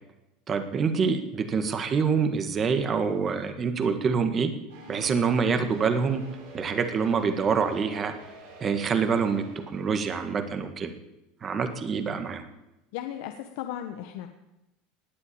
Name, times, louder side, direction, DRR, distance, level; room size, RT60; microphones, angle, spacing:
voice 1, 0.5-4.5 4.9-6.2 6.5-8.1 8.6-10.9 11.4-12.4, right 5 dB, 30° right, 8 dB, 1.8 m, -26 dB
sound 1, 4.7-10.0, right 1 dB, 80° right, 7.7 m, -46 dB
voice 2, 12.9-14.3, left 11 dB, 75° left, 6 dB, 1.3 m, -36 dB
19.5 x 8.3 x 8.8 m, 0.93 s
supercardioid pair, 135°, 0 cm